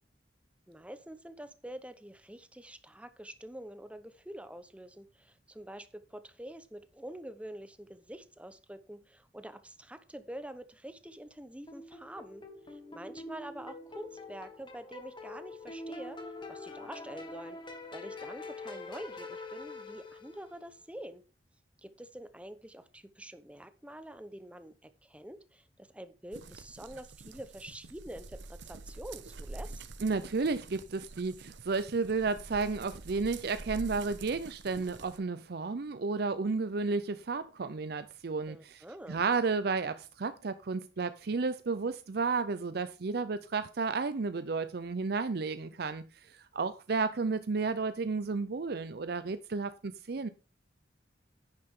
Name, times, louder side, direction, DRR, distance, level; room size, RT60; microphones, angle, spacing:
voice 1, 0.7-17.6 17.9-21.2 21.8-29.8 38.4-39.2, right 1 dB, 5° right, 1.0 m, -46 dB
sound 1, 11.7-20.6, left 2 dB, 25° left, 1.8 m, -45 dB
sound 2, 26.3-35.2, right 3 dB, 80° right, 0.9 m, -47 dB
voice 2, 30.0-50.3, right 4 dB, 60° right, 0.5 m, -32 dB
10.5 x 9.7 x 3.7 m
head